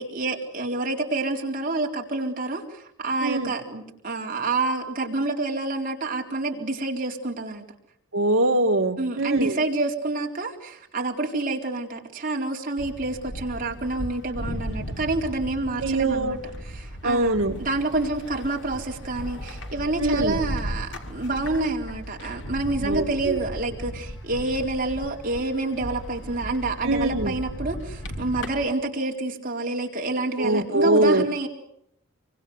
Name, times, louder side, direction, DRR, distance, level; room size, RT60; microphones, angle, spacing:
voice 1, 0.0-7.6 9.0-16.4 16.6-31.5, right 2 dB, 40° right, 1 dB, 4.1 m, -28 dB
voice 2, 3.2-3.5 8.1-9.6 15.8-16.4 17.0-17.6 20.0-20.4 22.8-23.4 26.8-27.3 30.4-31.2, right 2 dB, 75° right, 6 dB, 2.1 m, -23 dB
sound 1, 12.8-28.7, equal, 60° left, 3.2 m, -36 dB
28.0 x 24.0 x 8.1 m, 0.77 s
head